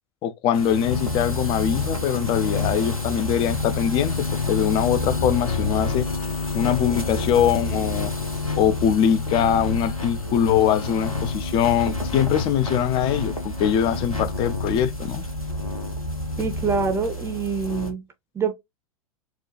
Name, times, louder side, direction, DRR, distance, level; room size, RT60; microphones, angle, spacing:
voice 1, 0.2-6.1 6.5-8.1 8.6-15.2, left 9 dB, 30° left, 0.5 m, -22 dB
sound 1, 0.5-17.9, left 3 dB, 90° left, 1.1 m, -28 dB
voice 2, 16.4-18.0 18.3-18.5, right 5 dB, 15° right, 0.6 m, -25 dB
4.7 x 2.3 x 3.0 m
figure-of-eight pair, 95°, 18 cm